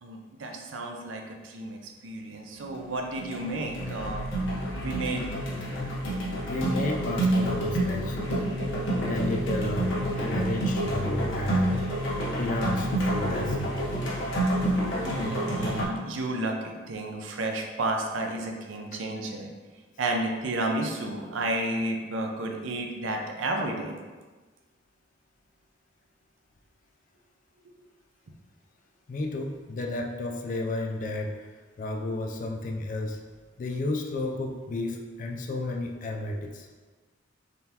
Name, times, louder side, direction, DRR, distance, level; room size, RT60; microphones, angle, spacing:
voice 1, 0.0-4.3 4.7-5.3 15.0-19.5 20.0-24.0, right 2 dB, 85° right, 2 dB, 0.6 m, -32 dB
sound 1, 2.6-2.9 3.2-15.8, right 1 dB, 70° left, 0.9 m, -28 dB
voice 2, 6.4-8.2 9.1-12.1 12.4-13.8 18.9-19.0 29.1-31.5 31.8-33.2 33.6-36.7, left 2 dB, 45° left, 2 dB, 0.4 m, -32 dB
3.8 x 3.3 x 2.8 m, 1.3 s
head